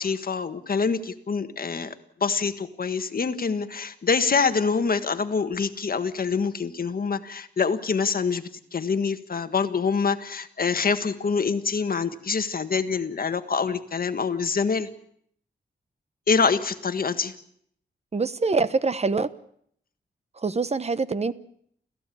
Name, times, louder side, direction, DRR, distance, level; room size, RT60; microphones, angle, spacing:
voice 1, 0.0-1.9 2.2-14.9 16.3-17.3, left 5 dB, 55° left, 9 dB, 1.6 m, -25 dB
voice 2, 18.1-19.3 20.4-21.3, right 4 dB, 35° right, 15 dB, 1.0 m, -24 dB
29.5 x 15.0 x 8.5 m, 0.67 s
wide cardioid pair, 115°, 18 cm